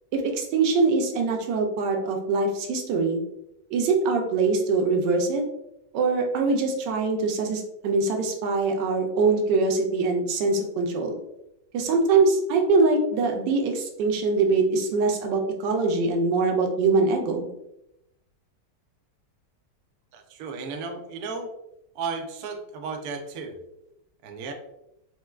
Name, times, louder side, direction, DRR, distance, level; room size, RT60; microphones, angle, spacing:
voice 1, 0.1-3.2 3.7-5.4 5.9-11.1 11.7-17.5, right 3 dB, 85° right, 2 dB, 1.2 m, -23 dB
voice 2, 20.1-21.5 21.9-23.6 24.2-24.5, right 4 dB, 70° right, 4 dB, 0.9 m, -34 dB
4.3 x 2.1 x 2.3 m, 0.85 s
omnidirectional pair, 1.8 m